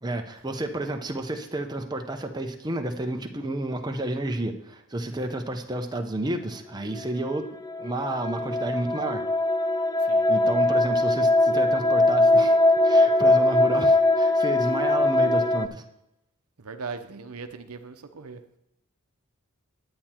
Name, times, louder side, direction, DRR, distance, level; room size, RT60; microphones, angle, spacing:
voice 1, 0.0-7.5 7.8-9.2 10.3-12.6 12.8-15.8, right 1 dB, 20° right, 4 dB, 0.8 m, -31 dB
sound 1, 7.3-15.7, left 2 dB, 15° left, 0.4 m, -21 dB
voice 2, 16.6-18.6, right 4 dB, 75° right, 8 dB, 0.8 m, -39 dB
10.5 x 8.7 x 4.5 m, 0.86 s
head